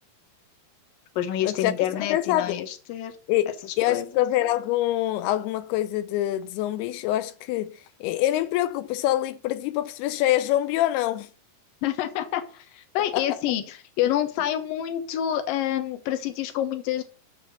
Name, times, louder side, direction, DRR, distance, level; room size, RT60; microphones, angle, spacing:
voice 1, 1.2-3.1 3.9-4.1 11.8-17.0, left 11 dB, 70° left, 2.7 m, -28 dB
voice 2, 2.1-2.6 3.3-7.7 8.0-11.3 13.1-13.3, left 14 dB, 90° left, 2.6 m, -25 dB
7.3 x 6.9 x 7.7 m
omnidirectional pair, 4.5 m